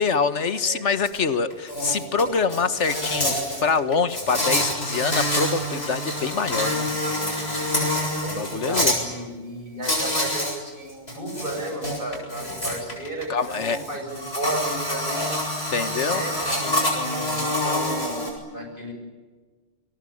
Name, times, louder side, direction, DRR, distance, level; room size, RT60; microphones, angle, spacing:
voice 1, 0.0-7.0 8.3-8.9 13.3-13.8 15.7-16.2, left 5 dB, 85° left, 11 dB, 1.7 m, -25 dB
voice 2, 0.6-0.9 6.9-7.4 8.2-15.3 16.1-18.9, right 1 dB, 50° right, 3 dB, 7.8 m, -34 dB
Insect, 1.1-1.2 1.5-9.0 9.8-10.6 10.9-18.3, left 1 dB, 60° left, 7.7 m, -27 dB
29.5 x 22.0 x 8.7 m, 1.4 s
omnidirectional pair, 1.2 m